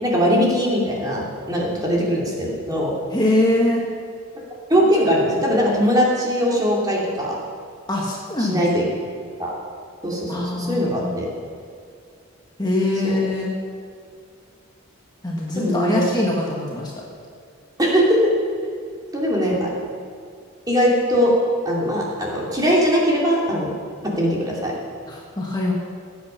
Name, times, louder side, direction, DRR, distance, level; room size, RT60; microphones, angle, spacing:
voice 1, 0.0-2.9 4.7-7.3 8.4-8.9 9.4-9.5 10.0-11.3 13.0-13.2 15.5-16.0 17.8-18.0 19.1-19.7 20.7-21.3 21.6-23.8 24.2-24.7, equal, 15° right, -3 dB, 2.7 m, -20 dB
voice 2, 3.1-3.8 7.9-8.6 10.3-11.1 12.6-13.5 15.2-16.9 25.1-25.7, left 1 dB, 20° left, -3 dB, 1.5 m, -23 dB
18.5 x 8.5 x 5.7 m, 2.2 s
head